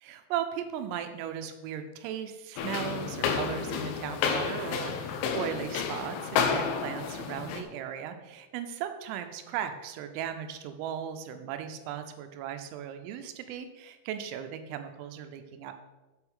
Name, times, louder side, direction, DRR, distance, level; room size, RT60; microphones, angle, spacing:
voice 1, 0.0-15.7, right 9 dB, 90° right, 8 dB, 3.3 m, -37 dB
sound 1, 2.6-7.6, left 6 dB, 80° left, 2.9 m, -31 dB
8.2 x 7.9 x 3.6 m, 1.1 s
omnidirectional pair, 5.9 m